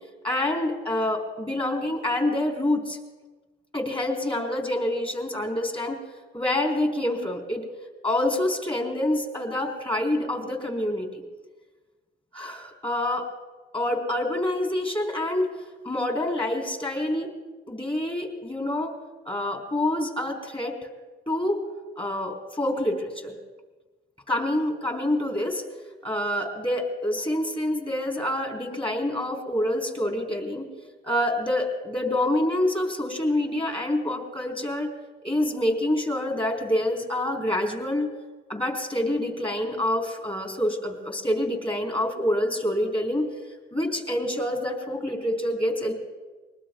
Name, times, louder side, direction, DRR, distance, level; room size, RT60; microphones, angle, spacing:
voice 1, 0.2-3.0 3.7-6.0 6.3-7.6 8.0-11.2 12.3-13.3 13.7-15.5 15.8-17.3 17.7-18.9 19.3-20.8 21.3-21.6 22.0-23.4 24.3-25.6 26.0-30.7 31.0-34.9 35.2-38.1 38.5-43.3 43.7-45.9, left 1 dB, 25° left, 2 dB, 4.1 m, -27 dB
24.0 x 21.0 x 2.4 m, 1.3 s
cardioid pair, 90°, 20 cm